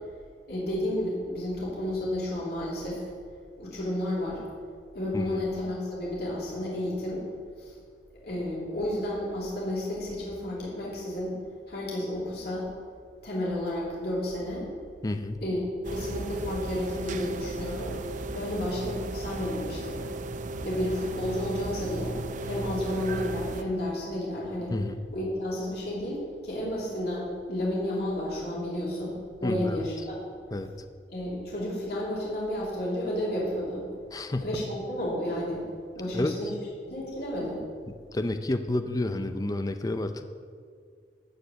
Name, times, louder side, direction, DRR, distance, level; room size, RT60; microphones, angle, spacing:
voice 1, 0.5-3.1 3.6-4.4 4.9-7.2 7.6-7.8 8.2-11.3 11.7-12.7 13.2-14.7 15.4-15.6 15.8-17.9 18.3-20.0 20.6-22.2 22.4-24.7 25.1-30.3 31.1-33.8 34.4-35.6 35.9-36.5 36.9-37.6, left 1 dB, 60° left, -6 dB, 3.0 m, -31 dB
voice 2, 15.0-15.4 24.7-25.0 29.4-29.9 30.5-30.7 34.1-34.6 36.1-36.4 38.1-40.3, left 2 dB, 20° left, 9 dB, 0.4 m, -30 dB
sound 1, 15.8-23.6, right 2 dB, 45° right, 0.6 m, -35 dB
13.0 x 4.9 x 8.1 m, 2.1 s
head